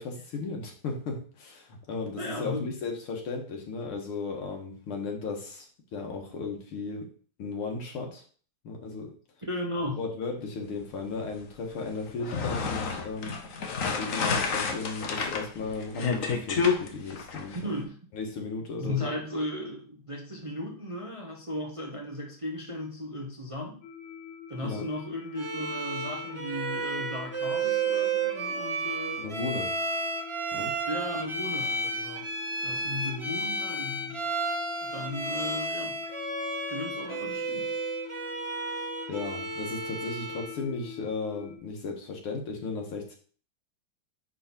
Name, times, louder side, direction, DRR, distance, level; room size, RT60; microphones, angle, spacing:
voice 1, 0.0-7.1 7.4-8.2 8.6-9.1 10.0-13.3 13.8-17.6 18.1-19.1 24.6-24.8 29.2-29.7 30.5-30.7 39.1-43.2, left 4 dB, 85° left, 2 dB, 2.4 m, -35 dB
voice 2, 2.2-2.6 9.5-10.0 17.6-18.0 18.8-23.8 24.5-29.2 30.9-32.3 32.6-34.6 34.8-36.0 36.7-37.7, left 1 dB, 20° right, 0 dB, 0.8 m, -36 dB
sound 1, 12.1-17.6, left 5 dB, 50° left, 1.1 m, -30 dB
sound 2, 23.8-41.6, left 8 dB, 70° left, 1.7 m, -45 dB
Bowed string instrument, 25.4-40.6, right 3 dB, 40° right, 0.4 m, -32 dB
9.3 x 4.0 x 4.4 m, 0.42 s
omnidirectional pair, 2.3 m